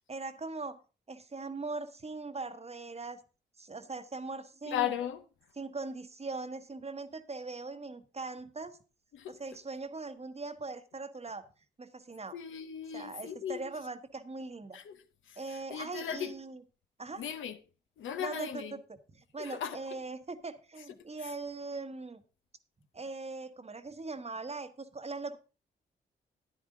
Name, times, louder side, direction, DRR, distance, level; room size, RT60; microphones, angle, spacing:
voice 1, 0.1-0.8 1.1-3.2 3.6-5.0 5.6-8.8 9.3-11.5 11.8-12.4 12.9-14.8 15.4-16.6 17.0-17.2 18.2-22.2 22.9-25.4, right 3 dB, 30° right, 1.1 m, -40 dB
voice 2, 4.7-5.2 9.1-9.4 12.3-13.6 14.7-15.0 15.7-16.3 17.2-17.6 18.0-18.7 19.4-20.0, left 10 dB, 75° left, 0.8 m, -36 dB
10.0 x 9.8 x 3.7 m
hypercardioid pair, 40°, 20 cm